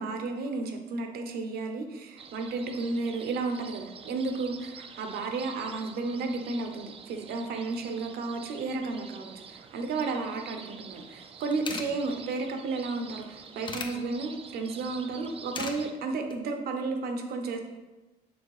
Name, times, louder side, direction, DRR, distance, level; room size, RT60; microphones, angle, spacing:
voice 1, 0.0-4.7 5.0-17.6, right 3 dB, 65° right, 5 dB, 1.0 m, -33 dB
sound 1, 2.2-15.9, right 6 dB, 35° right, 0.5 m, -47 dB
sound 2, 11.1-11.2 11.4-11.9 13.1-13.9 15.2-15.8 16.1-16.4, left 4 dB, 30° left, 0.7 m, -36 dB
6.4 x 3.6 x 4.9 m, 1.1 s
cardioid pair, 110°, 17 cm